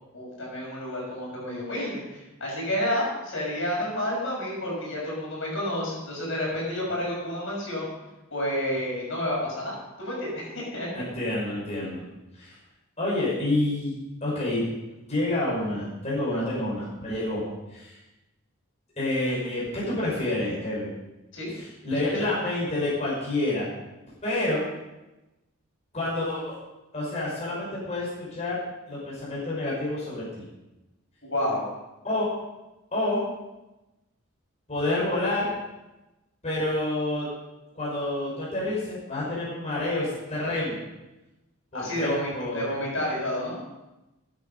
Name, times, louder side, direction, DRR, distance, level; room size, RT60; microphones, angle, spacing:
voice 1, 0.1-7.9 8.3-10.9 21.3-21.5 21.9-22.3 31.3-31.6 41.7-43.6, left 1 dB, 60° left, -4 dB, 6.2 m, -30 dB
voice 2, 10.9-12.0 12.3-12.5 13.0-13.9 14.2-14.7 15.1-17.4 17.7-18.0 19.0-20.9 21.5-23.7 24.2-24.6 25.9-26.6 26.9-28.6 28.9-30.4 32.0-32.3 32.9-33.2 34.7-35.5 36.4-37.3 37.7-40.8 41.7-42.7, left 1 dB, 30° left, -7 dB, 5.4 m, -28 dB
15.0 x 10.0 x 5.4 m, 1.0 s
head